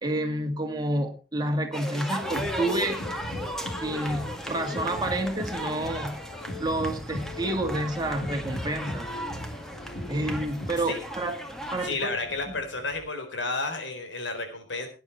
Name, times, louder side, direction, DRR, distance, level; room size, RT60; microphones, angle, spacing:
voice 1, 0.0-3.0 3.8-6.2 6.6-9.1 10.1-11.4 11.7-12.1, right 1 dB, 25° right, 4 dB, 2.3 m, -29 dB
sound 1, 1.7-11.9, equal, 5° left, 2.0 m, -36 dB
sound 2, 2.2-11.0, left 1 dB, 60° left, 6.4 m, -38 dB
sound 3, 6.5-13.0, equal, 25° left, 7.5 m, -47 dB
voice 2, 11.8-14.9, left 3 dB, 85° left, 6 dB, 4.0 m, -31 dB
17.5 x 9.6 x 4.4 m, 0.32 s
head